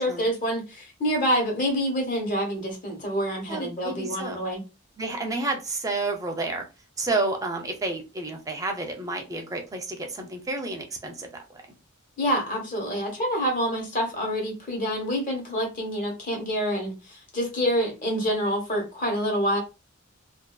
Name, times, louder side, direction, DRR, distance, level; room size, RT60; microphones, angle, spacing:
voice 1, 0.0-4.6 12.2-19.6, equal, 40° left, 1.0 m, -27 dB
voice 2, 3.5-4.4 5.0-6.6 7.0-11.6, right 2 dB, 15° right, 0.5 m, -30 dB
2.5 x 2.4 x 2.3 m
head